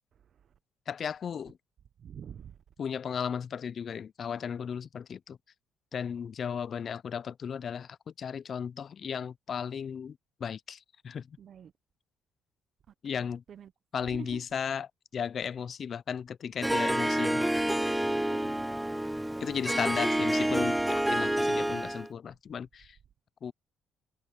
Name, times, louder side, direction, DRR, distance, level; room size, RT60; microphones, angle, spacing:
voice 1, 0.9-1.6 2.8-5.4 5.9-11.4 13.0-13.4 13.9-17.5 19.4-23.0 23.4-23.5, left 7 dB, 50° left, 0.5 m, -35 dB
voice 2, 2.0-2.6 11.4-11.7 13.1-13.7 14.0-14.4 18.3-18.7, right 8 dB, 55° right, 0.9 m, -46 dB
Harp, 16.6-22.1, right 1 dB, 5° right, 0.6 m, -28 dB
cardioid pair, 80°, 0 cm